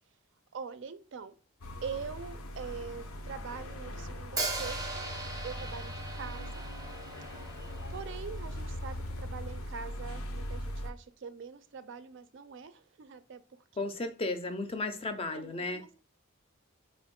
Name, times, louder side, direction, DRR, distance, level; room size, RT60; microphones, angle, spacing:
voice 1, 0.5-1.3 1.8-5.0 5.4-6.5 7.9-13.6 15.3-16.0, right 6 dB, 60° right, 0.4 m, -43 dB
sound 1, 1.6-10.9, equal, 85° left, 0.6 m, -40 dB
Hi-hat, 4.4-8.3, right 3 dB, 15° right, 0.6 m, -39 dB
voice 2, 13.8-15.8, left 2 dB, 25° left, 0.4 m, -34 dB
4.3 x 2.5 x 3.6 m
head